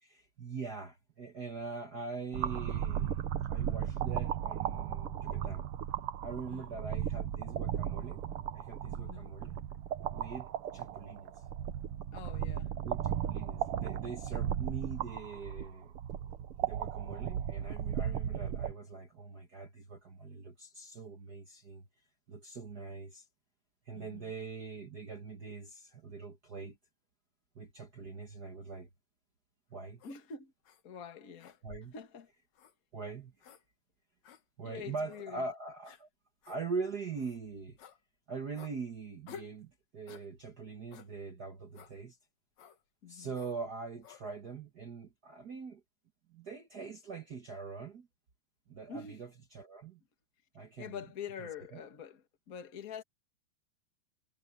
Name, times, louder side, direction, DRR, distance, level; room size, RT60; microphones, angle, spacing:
voice 1, 0.0-3.2 3.4-5.6 6.2-8.2 8.5-9.6 10.1-11.3 12.8-15.9 16.6-21.9 22.3-23.3 23.8-26.8 27.5-28.9 29.7-30.0 31.6-31.9 32.9-33.3 34.6-36.1 36.4-37.8 38.3-42.2 43.1-45.8 46.3-48.1 48.7-50.0 50.5-51.0 51.4-51.8, right 4 dB, 65° right, 0.9 m, -43 dB
Boiling Stew, 2.3-18.7, right 10 dB, 80° right, 1.2 m, -36 dB
voice 2, 6.5-7.0 9.0-9.3 12.1-12.7 23.9-24.3 30.0-30.5 30.8-31.6 31.9-32.3 34.6-35.4 43.0-43.3 48.9-49.2 50.8-53.0, left 6 dB, 35° left, 1.5 m, -46 dB
sound 1, 30.0-30.2 30.6-30.8 31.4-32.0 32.6-32.7 33.4-33.6 34.2-34.4 35.1-35.2 35.8-36.0 36.4-36.6 37.1-37.4 37.8-38.0 38.6-38.7 39.3-39.6 40.1-40.3 40.9-41.1 41.7-41.9 42.6-42.8 43.3-43.6 44.0-44.2, left 8 dB, 60° left, 2.6 m, -52 dB
omnidirectional pair, 4.0 m